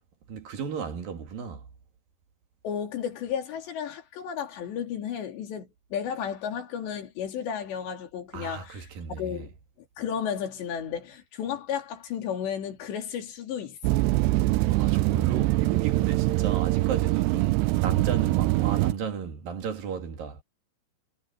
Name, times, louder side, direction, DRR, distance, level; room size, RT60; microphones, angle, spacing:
voice 1, 0.3-1.7 8.3-9.5 14.7-20.4, right 7 dB, 60° right, 3.8 m, -34 dB
voice 2, 2.6-9.5 10.0-14.0, left 8 dB, 90° left, 5.2 m, -33 dB
sound 1, 13.8-18.9, right 19 dB, 85° right, 2.7 m, -23 dB
omnidirectional pair, 4.9 m